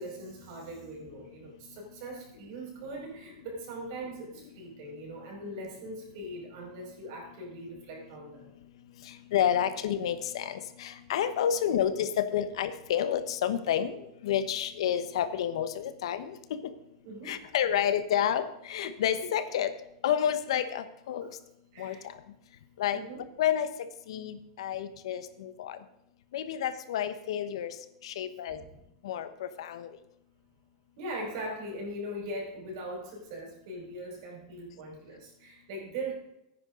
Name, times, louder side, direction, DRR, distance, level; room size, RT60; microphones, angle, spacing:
voice 1, 0.0-8.5 17.0-17.4 18.8-19.0 21.2-21.3 21.7-22.1 22.9-23.2 28.5-28.7 31.0-36.1, right 1 dB, 50° right, -1 dB, 5.4 m, -40 dB
voice 2, 9.0-16.4 17.2-19.7 20.0-21.3 21.8-22.2 22.8-23.0 23.4-23.7 24.1-25.8 26.3-27.7 28.0-28.6 29.0-29.9, left 9 dB, 80° left, 12 dB, 1.1 m, -30 dB
14.5 x 9.9 x 3.9 m, 0.84 s
supercardioid pair, 170°, 3 cm